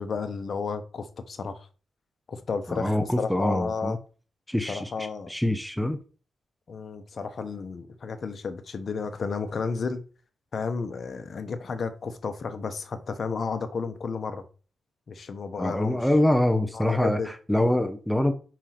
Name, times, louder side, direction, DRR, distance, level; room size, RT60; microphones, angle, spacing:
voice 1, 0.0-1.7 2.3-4.0 4.7-5.3 6.7-10.0 10.5-14.4 15.1-16.1 16.7-17.3, left 5 dB, 45° left, 1.0 m, -32 dB
voice 2, 2.7-4.0 4.5-4.9 5.3-6.0 15.6-18.3, left 1 dB, 5° left, 0.7 m, -24 dB
5.1 x 4.5 x 5.9 m
wide cardioid pair, 130°, 0 cm